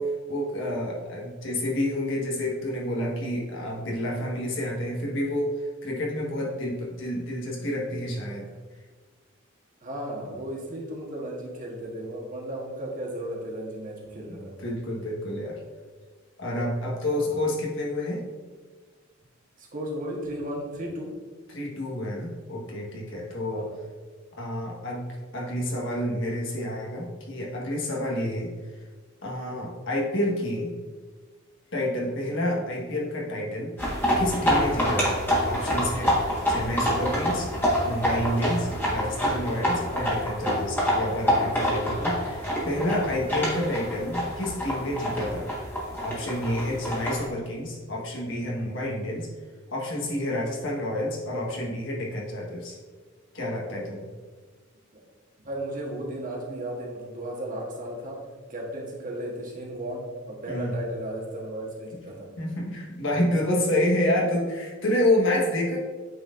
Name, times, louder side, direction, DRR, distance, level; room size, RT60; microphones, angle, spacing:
voice 1, 0.0-5.5 5.8-8.4 14.6-15.6 16.4-18.2 21.5-23.7 24.4-25.1 25.3-28.5 29.2-30.7 31.7-33.7 34.2-36.1 36.5-37.5 37.8-45.4 46.0-49.3 49.7-52.8 53.3-54.1 60.5-60.7 62.4-65.8, left 1 dB, 60° left, -2 dB, 1.5 m, -29 dB
voice 2, 9.8-14.5 17.1-17.3 19.6-21.1 23.5-23.7 54.9-55.0 55.4-58.2 58.5-62.3, right 1 dB, 40° right, -2 dB, 1.3 m, -35 dB
sound 1, 33.8-47.3, equal, 10° left, 1.5 m, -27 dB
8.8 x 4.2 x 2.6 m, 1.4 s
head